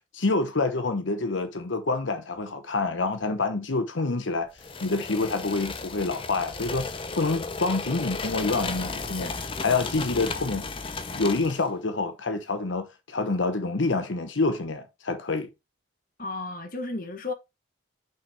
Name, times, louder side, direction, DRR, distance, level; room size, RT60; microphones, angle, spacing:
voice 1, 0.1-4.5 4.8-10.7 11.1-15.5, left 3 dB, 75° left, 0.9 m, -27 dB
sound 1, 4.6-11.7, left 4 dB, 25° left, 0.7 m, -34 dB
voice 2, 16.2-17.3, left 2 dB, 45° left, 1.2 m, -33 dB
5.7 x 5.7 x 3.5 m
head